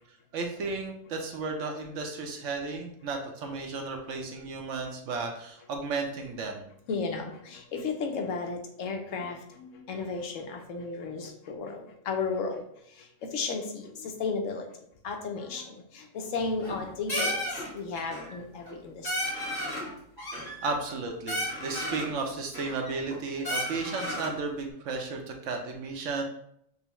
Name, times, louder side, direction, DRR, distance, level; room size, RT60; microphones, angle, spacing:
voice 1, 0.3-6.7 19.8-20.3 20.6-26.2, right 4 dB, 70° right, 3 dB, 0.9 m, -34 dB
voice 2, 6.9-12.6 13.3-14.7 15.0-17.4 17.7-19.1, left 4 dB, 70° left, 3 dB, 0.9 m, -34 dB
sound 1, 16.4-16.8 17.1-17.7 17.9-18.3 18.6-18.7 19.0-19.9 20.2-21.0 21.3-22.1 22.5-23.1 23.4-24.3, equal, 30° left, 1.3 m, -33 dB
5.3 x 2.0 x 3.0 m, 0.72 s
omnidirectional pair, 1.5 m